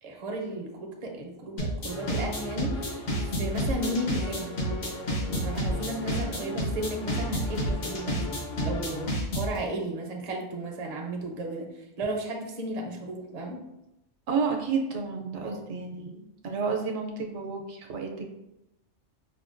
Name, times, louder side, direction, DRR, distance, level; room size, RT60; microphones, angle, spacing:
voice 1, 0.0-4.9 5.2-8.2 8.6-13.6 15.4-15.6, right 1 dB, 45° right, 1 dB, 0.5 m, -34 dB
sound 1, 1.6-9.6, equal, 75° left, 1.3 m, -29 dB
sound 2, 1.9-9.1, left 1 dB, 55° left, 0.7 m, -39 dB
voice 2, 14.3-18.4, right 5 dB, 75° right, 2 dB, 0.9 m, -31 dB
5.1 x 2.2 x 2.4 m, 0.89 s
omnidirectional pair, 1.2 m